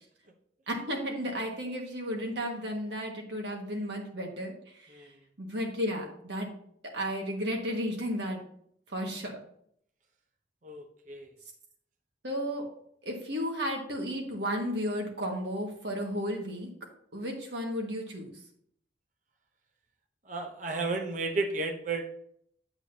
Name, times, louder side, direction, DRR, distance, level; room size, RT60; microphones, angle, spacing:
voice 1, 0.7-5.1 5.4-6.5 6.9-8.4 8.9-9.4 12.2-12.7 13.0-16.7 17.1-18.3, equal, 80° right, 1 dB, 1.8 m, -33 dB
voice 2, 10.6-11.3 20.3-22.1, right 3 dB, 45° right, 4 dB, 0.8 m, -33 dB
7.9 x 7.8 x 2.8 m, 0.67 s
head